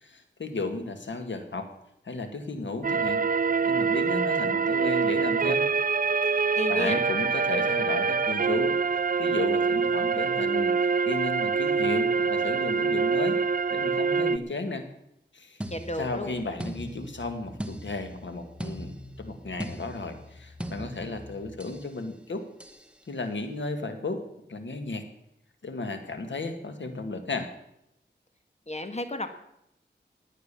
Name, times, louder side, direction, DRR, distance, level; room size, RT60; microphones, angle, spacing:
voice 1, 0.0-1.7 2.0-3.2 3.6-5.6 6.3-13.4 13.7-14.8 15.3-15.6 16.0-22.4 23.1-24.2 24.5-25.0 25.6-27.5, left 3 dB, 80° left, 7 dB, 2.0 m, -34 dB
sound 1, 2.8-14.4, right 5 dB, 50° right, 0.5 m, -25 dB
voice 2, 6.6-7.0 15.7-16.4 28.7-29.3, left 1 dB, 35° left, 8 dB, 1.7 m, -32 dB
sound 2, 15.6-21.9 22.6-22.9, equal, 5° right, 1.3 m, -40 dB
17.5 x 9.5 x 6.9 m, 0.79 s
wide cardioid pair, 75°, 19 cm